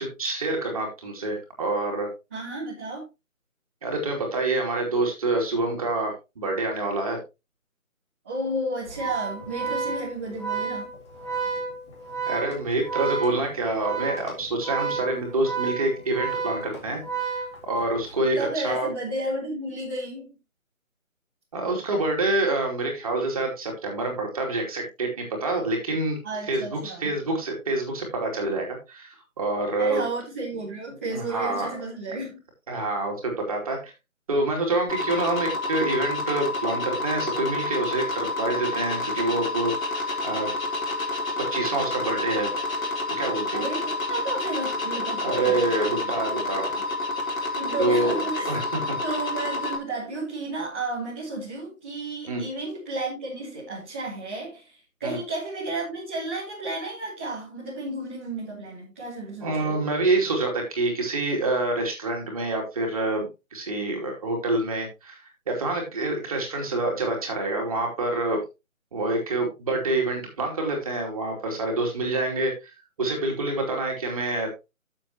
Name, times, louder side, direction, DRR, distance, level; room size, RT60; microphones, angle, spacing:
voice 1, 0.0-2.1 3.8-7.2 12.3-18.9 21.5-26.2 26.5-30.0 31.1-31.7 32.7-33.8 34.3-40.5 41.5-42.5 43.2-43.6 45.2-46.8 47.8-48.1 48.4-49.2 52.3-52.4 55.0-55.2 59.4-68.4 68.9-72.7 73.0-74.5, right 2 dB, 25° right, 2.9 m, -27 dB
voice 2, 2.3-3.1 8.2-10.9 18.3-20.3 26.2-27.1 29.8-32.4 43.5-45.9 46.2-46.3 47.6-48.5 49.0-59.8, right 2 dB, 10° right, 1.3 m, -32 dB
Organ, 8.9-18.0, right 5 dB, 20° left, 2.3 m, -31 dB
sound 1, 34.9-49.8, left 2 dB, 70° left, 4.4 m, -29 dB
12.0 x 7.2 x 2.9 m
figure-of-eight pair, 165°, 42 cm